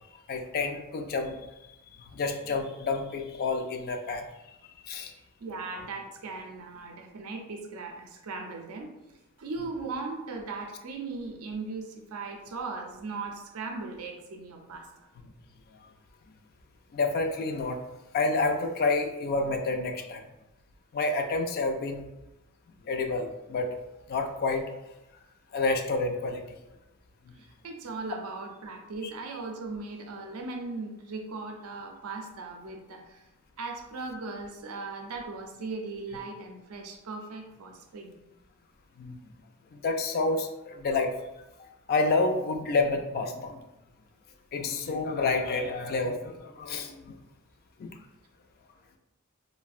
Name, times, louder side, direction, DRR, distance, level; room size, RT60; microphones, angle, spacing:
voice 1, 0.3-1.4 1.9-5.1 16.9-17.8 18.1-20.2 20.9-22.0 22.8-23.8 24.1-24.7 25.5-26.6 39.0-39.2 39.7-41.1 41.6-43.6 44.5-47.2 47.8-48.0, left 3 dB, 45° left, 5 dB, 0.3 m, -29 dB
voice 2, 5.1-8.9 9.4-15.1 27.4-33.2 33.6-38.1, right 3 dB, 75° right, 3 dB, 0.4 m, -38 dB
3.3 x 2.1 x 2.3 m, 0.93 s
head